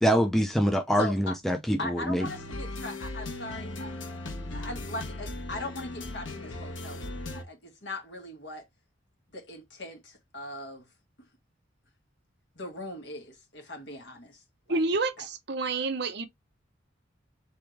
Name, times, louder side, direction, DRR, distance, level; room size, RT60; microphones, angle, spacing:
voice 1, 0.0-2.3, equal, ahead, 0.4 m, -25 dB
voice 2, 1.0-1.3 1.8-4.2 4.5-8.6 9.3-10.9 12.5-14.4 14.7-14.8 15.2-15.3, left 1 dB, 60° left, 1.6 m, -40 dB
sound 1, 2.2-7.4, left 2 dB, 85° left, 1.1 m, -38 dB
voice 3, 14.7-16.3, right 3 dB, 60° right, 0.7 m, -28 dB
3.6 x 3.3 x 4.4 m
head